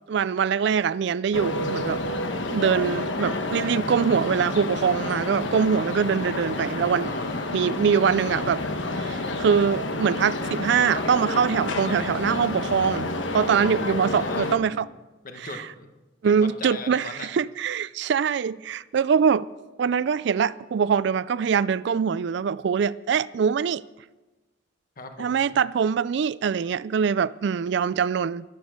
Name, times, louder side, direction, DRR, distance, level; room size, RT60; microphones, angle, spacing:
voice 1, 0.1-2.0 2.5-7.1 7.5-8.6 9.0-14.9 16.2-19.5 19.8-23.8 25.2-28.4, right 7 dB, 65° right, 0.4 m, -23 dB
sound 1, 1.3-14.6, left 2 dB, 80° left, 1.2 m, -29 dB
voice 2, 7.0-7.8 13.3-13.7 14.0-14.8 15.2-15.9 16.2-17.3 25.0-25.5, left 3 dB, 50° left, 1.3 m, -39 dB
12.0 x 12.0 x 6.4 m
head